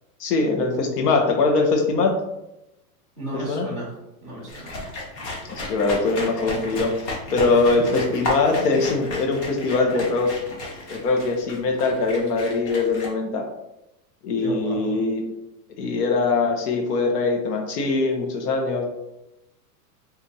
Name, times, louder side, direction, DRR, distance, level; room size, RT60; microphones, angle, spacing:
voice 1, 0.2-2.1 3.5-3.7 5.5-7.0 7.3-10.3 10.9-13.4 14.2-15.3 15.8-18.9, left 3 dB, 90° left, 2 dB, 0.9 m, -22 dB
voice 2, 3.2-3.9 4.2-4.7 7.5-7.6 14.4-15.0, right 1 dB, 10° left, -8 dB, 0.5 m, -33 dB
sound 1, 4.5-13.1, left 2 dB, 45° left, 1.0 m, -33 dB
4.2 x 2.4 x 2.7 m, 0.91 s
supercardioid pair, 170°, 46 cm